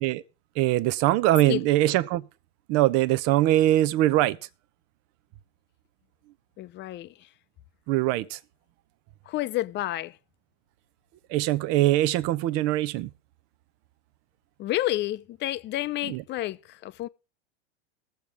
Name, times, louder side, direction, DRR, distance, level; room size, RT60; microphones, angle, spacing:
voice 1, 0.6-2.2 2.7-4.4 7.9-8.4 11.3-13.1 16.0-16.2, right 15 dB, 50° right, 0.8 m, -22 dB
voice 2, 6.6-7.1 9.3-10.2 14.6-17.1, left 15 dB, 35° left, 0.7 m, -30 dB
21.5 x 7.5 x 3.4 m
hypercardioid pair, 105°, 31 cm